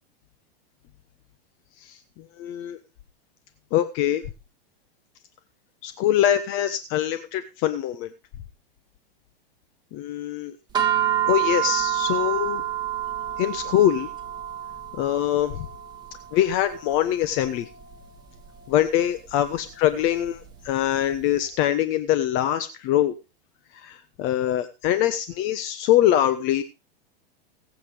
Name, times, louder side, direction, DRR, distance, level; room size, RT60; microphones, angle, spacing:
voice 1, 2.4-2.8 3.7-4.2 5.8-8.1 9.9-10.5 11.3-12.6 13.4-14.1 15.0-15.7 16.3-17.7 18.7-23.1 23.7-26.6, left 11 dB, 40° left, 11 dB, 1.1 m, -23 dB
sound 1, 10.7-21.2, right 11 dB, 15° right, 2.3 m, -29 dB
21.0 x 8.3 x 3.4 m, 0.28 s
hypercardioid pair, 130°, 30 cm